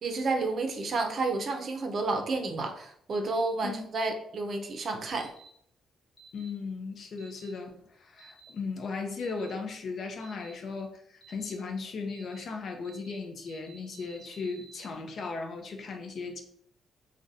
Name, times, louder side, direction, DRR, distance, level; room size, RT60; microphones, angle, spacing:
voice 1, 0.0-5.3, right 3 dB, 50° right, 5 dB, 0.5 m, -30 dB
sound 1, 5.2-5.5 6.2-6.5 7.2-7.5 8.2-8.5 9.2-9.5 10.2-10.5 11.2-11.5 12.1-12.4 12.8-13.2 13.5-14.9, right 4 dB, 30° left, 1.1 m, -53 dB
voice 2, 6.3-16.4, left 4 dB, 55° left, 3 dB, 0.6 m, -37 dB
3.8 x 2.2 x 2.5 m, 0.67 s
cardioid pair, 90°, 0 cm